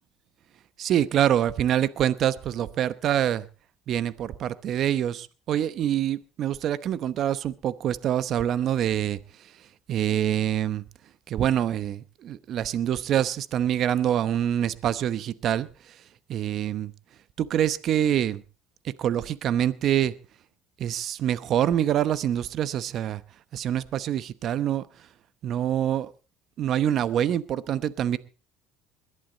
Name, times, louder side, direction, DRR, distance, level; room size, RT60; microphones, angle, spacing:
voice 1, 0.8-3.4 3.9-9.2 9.9-10.8 11.3-16.0 16.3-16.9 17.4-18.4 18.8-20.1 20.8-23.2 23.5-24.8 25.4-26.1 26.6-28.2, right 10 dB, 50° right, 16 dB, 0.9 m, -25 dB
21.0 x 11.5 x 4.0 m, 0.33 s
supercardioid pair, 105°, 0 cm